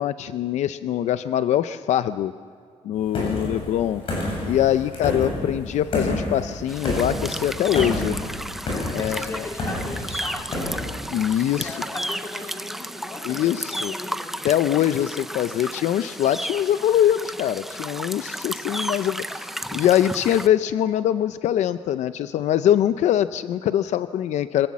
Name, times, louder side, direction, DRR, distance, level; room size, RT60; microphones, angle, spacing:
voice 1, 0.0-2.3 2.8-4.0 4.4-8.2 8.9-9.5 11.1-11.8 13.2-13.9 14.4-24.7, left 11 dB, 75° left, 12 dB, 0.6 m, -23 dB
sound 1, 3.1-11.0, left 1 dB, 50° left, 7.7 m, -29 dB
sound 2, 6.7-20.5, right 1 dB, ahead, 0.5 m, -33 dB
voice 2, 9.0-10.9 11.6-14.4, left 2 dB, 20° left, 0 dB, 3.2 m, -38 dB
25.0 x 17.0 x 7.3 m, 2.2 s
cardioid pair, 165°, 12 cm